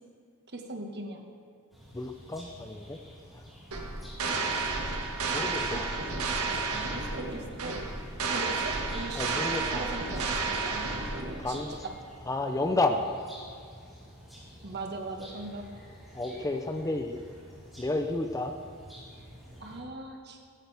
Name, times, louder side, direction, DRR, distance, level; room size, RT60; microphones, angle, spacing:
voice 1, 0.5-1.3 6.9-7.8 8.3-10.8 11.4-11.9 14.6-15.6 16.3-16.4 19.6-20.4, right 2 dB, 50° right, 2 dB, 1.6 m, -39 dB
sound 1, 1.7-19.8, equal, ahead, 4.2 m, -50 dB
voice 2, 1.9-3.0 3.3-3.4 5.3-5.9 9.1-9.9 11.4-11.8 12.2-13.0 16.1-17.2 17.8-18.5, left 2 dB, 15° left, 6 dB, 0.5 m, -31 dB
sound 2, 3.7-11.6, right 3 dB, 80° right, 1.6 m, -31 dB
17.0 x 14.5 x 3.5 m, 2.2 s
head